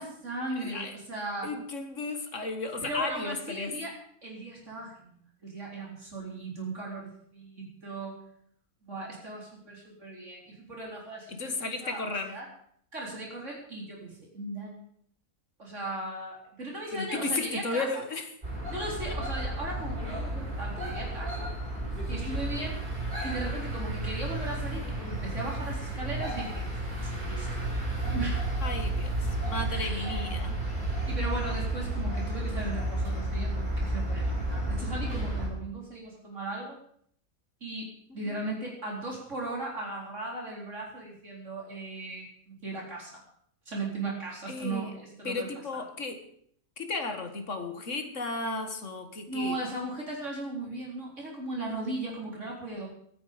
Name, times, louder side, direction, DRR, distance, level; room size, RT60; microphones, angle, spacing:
voice 1, 0.0-1.5 2.8-3.9 4.2-8.2 8.8-11.5 11.8-12.0 12.3-12.5 12.9-14.8 15.6-17.9 18.7-21.5 22.1-22.8 23.2-27.5 28.1-28.5 29.7-30.3 31.1-36.8 37.6-37.9 38.1-43.1 43.7-45.5 45.7-45.8 49.3-52.9, right 2 dB, 55° right, -2 dB, 4.2 m, -37 dB
voice 2, 0.6-0.9 1.4-3.7 11.3-12.4 16.9-18.3 19.1-19.2 28.6-30.6 38.1-38.4 44.5-44.9 45.2-46.2 46.8-49.6, left 3 dB, 55° left, 6 dB, 2.1 m, -34 dB
sound 1, 18.4-35.5, right 1 dB, 30° right, 5.7 m, -32 dB
21.5 x 9.5 x 5.1 m, 0.66 s
omnidirectional pair, 1.5 m